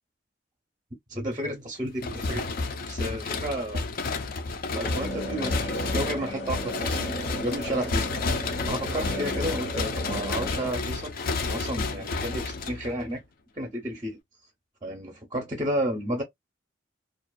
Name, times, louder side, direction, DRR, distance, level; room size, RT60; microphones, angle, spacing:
voice 1, 1.1-2.5 2.9-3.8 4.7-8.2 8.7-11.1 11.5-13.2 13.6-14.2 14.8-16.2, equal, 20° right, 0.6 m, -32 dB
sound 1, 2.0-13.2, left 3 dB, 50° left, 0.4 m, -31 dB
sound 2, 4.8-10.7, equal, 85° left, 1.1 m, -35 dB
2.4 x 2.3 x 2.2 m
head